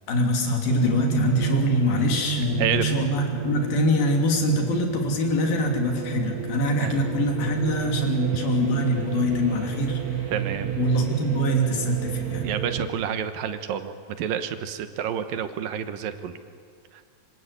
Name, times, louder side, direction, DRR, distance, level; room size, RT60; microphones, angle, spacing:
voice 1, 0.1-10.3 10.8-12.5, left 1 dB, 90° left, 2 dB, 5.0 m, -24 dB
sound 1, 0.7-12.9, right 9 dB, 35° right, 1.5 m, -31 dB
voice 2, 10.3-10.8 12.4-16.3, right 9 dB, 80° right, 9 dB, 2.9 m, -29 dB
26.5 x 26.0 x 8.3 m, 2.1 s
omnidirectional pair, 4.1 m